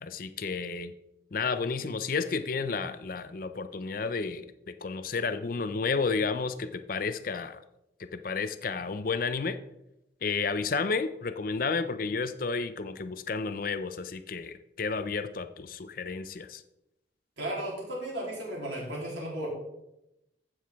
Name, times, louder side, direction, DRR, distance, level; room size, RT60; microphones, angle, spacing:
voice 1, 0.0-0.9 1.3-7.6 8.1-9.6 10.2-16.6, left 4 dB, 45° left, 11 dB, 0.5 m, -31 dB
voice 2, 17.4-19.5, right 1 dB, 70° right, -4 dB, 3.3 m, -35 dB
15.0 x 6.4 x 3.5 m, 0.88 s
head